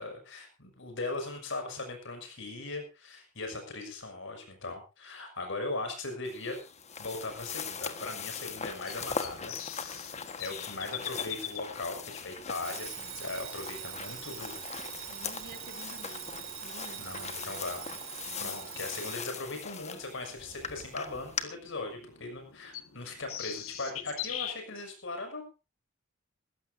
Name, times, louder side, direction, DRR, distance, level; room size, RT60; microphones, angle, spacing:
voice 1, 0.0-6.6 7.0-10.1 10.4-14.6 17.0-17.8 18.4-25.5, left 2 dB, 65° left, 5 dB, 6.3 m, -39 dB
sound 1, 6.2-21.4, left 6 dB, 35° left, 1.5 m, -41 dB
sound 2, 6.8-24.5, left 10 dB, 80° left, 1.8 m, -46 dB
Alarm, 12.6-19.3, right 10 dB, 80° right, 5.0 m, -43 dB
voice 2, 15.1-17.8 18.3-18.7, right 2 dB, 50° right, 6 dB, 3.2 m, -51 dB
21.0 x 15.5 x 2.7 m, 0.30 s
head